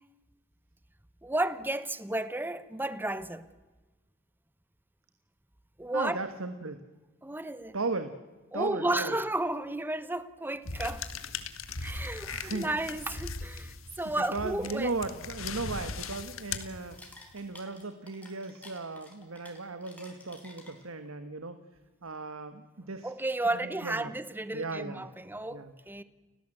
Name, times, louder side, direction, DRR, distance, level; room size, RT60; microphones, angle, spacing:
voice 1, 1.2-3.5 5.8-6.2 7.2-7.8 8.5-11.0 11.8-15.0 23.0-26.0, right 2 dB, 10° right, 0.9 m, -33 dB
voice 2, 5.9-6.8 7.7-8.2 8.5-9.2 12.3-12.7 14.0-17.0 17.3-21.6 22.0-23.1 23.5-24.1 24.5-25.0 25.5-25.7, right 3 dB, 85° right, 1.4 m, -36 dB
sound 1, 10.7-17.3, left 4 dB, 75° left, 1.8 m, -39 dB
sound 2, 16.0-21.1, left 2 dB, 5° left, 4.7 m, -53 dB
30.0 x 16.0 x 7.8 m
head